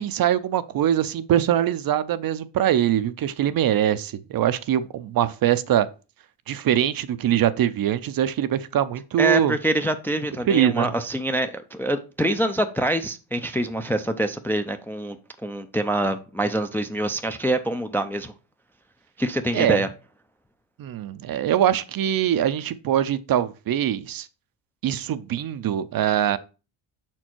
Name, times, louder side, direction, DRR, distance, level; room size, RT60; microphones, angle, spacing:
voice 1, 0.0-5.9 6.5-9.5 10.5-10.9 19.5-19.8 20.8-24.3 24.8-26.4, right 10 dB, 45° right, 0.6 m, -23 dB
voice 2, 9.2-15.2 15.4-18.3 19.2-19.9, right 1 dB, 5° left, 0.4 m, -25 dB
5.7 x 4.5 x 4.5 m
supercardioid pair, 85°, 50 cm